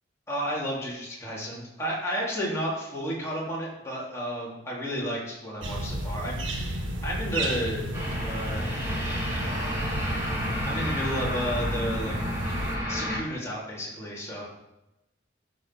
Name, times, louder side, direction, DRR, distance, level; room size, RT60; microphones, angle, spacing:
voice 1, 0.3-7.9 8.3-8.9 10.6-12.1 12.9-14.5, equal, 15° left, -6 dB, 3.6 m, -32 dB
sound 1, 5.6-12.8, right 1 dB, 90° right, 1.7 m, -32 dB
sound 2, 7.9-13.2, equal, 15° right, 3.4 m, -32 dB
14.0 x 5.4 x 6.4 m, 0.93 s
head